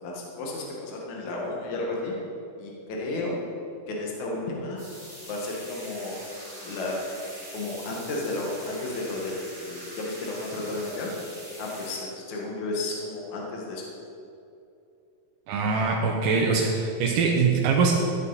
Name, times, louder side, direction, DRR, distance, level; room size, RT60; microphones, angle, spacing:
voice 1, 0.0-2.1 2.6-3.3 3.9-4.8 5.3-6.2 6.6-6.9 7.5-11.1 11.6-13.8, left 2 dB, 60° left, -2 dB, 2.9 m, -33 dB
sound 1, 4.8-12.0, equal, 5° left, 2.2 m, -43 dB
voice 2, 15.5-17.9, right 5 dB, 80° right, 0 dB, 2.5 m, -23 dB
14.0 x 9.7 x 4.1 m, 2.6 s
omnidirectional pair, 3.9 m